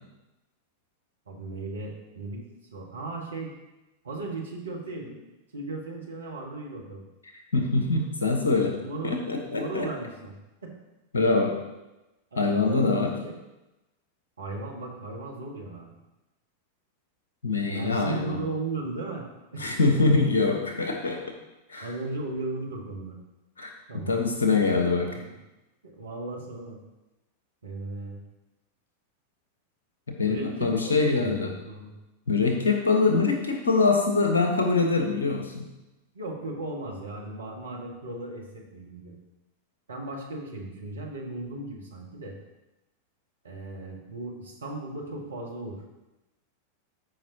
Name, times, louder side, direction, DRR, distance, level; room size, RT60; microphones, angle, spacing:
voice 1, 1.3-2.4 2.7-3.5 4.0-5.2 5.5-7.0 8.8-9.1 9.5-10.4 10.6-10.7 12.3-13.3 14.4-15.9 17.7-19.8 21.8-23.2 23.9-25.4 25.8-26.8 27.6-28.2 30.2-31.9 36.1-39.1 39.9-42.3 43.4-45.8, right 2 dB, 75° right, -1 dB, 1.6 m, -36 dB
voice 2, 7.5-8.8 9.0-9.9 11.1-11.6 12.4-13.1 17.4-18.4 19.6-21.2 21.7-21.9 23.6-23.7 24.1-25.1 30.1-30.4 30.6-31.5 32.3-35.7, left 3 dB, 70° left, 3 dB, 1.3 m, -24 dB
13.0 x 5.4 x 2.9 m, 1.0 s
figure-of-eight pair, 90°, 0 cm